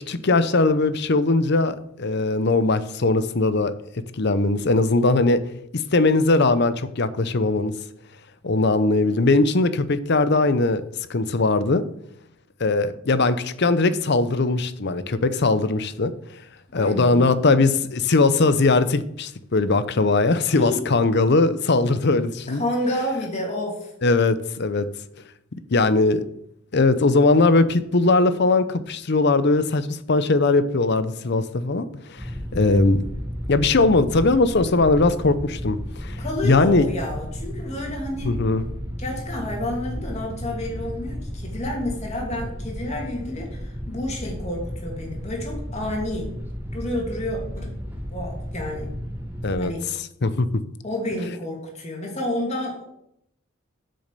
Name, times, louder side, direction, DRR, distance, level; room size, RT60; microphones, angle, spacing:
voice 1, 0.1-3.7 4.1-5.4 5.9-7.7 8.4-10.8 11.1-11.8 12.6-16.1 16.7-22.6 24.0-24.9 25.5-26.2 26.7-33.0 33.5-36.9 38.2-38.7 49.4-49.7 50.2-50.5, left 3 dB, 55° left, 13 dB, 0.7 m, -20 dB
voice 2, 16.7-17.3 20.5-20.8 22.5-23.9 36.2-38.3 39.0-46.3 46.7-47.7 48.0-48.9 49.6-49.9 50.8-52.9, left 1 dB, 35° left, -1 dB, 2.9 m, -29 dB
sound 1, 32.2-49.6, equal, 10° right, 1.6 m, -33 dB
8.4 x 6.5 x 6.7 m, 0.74 s
head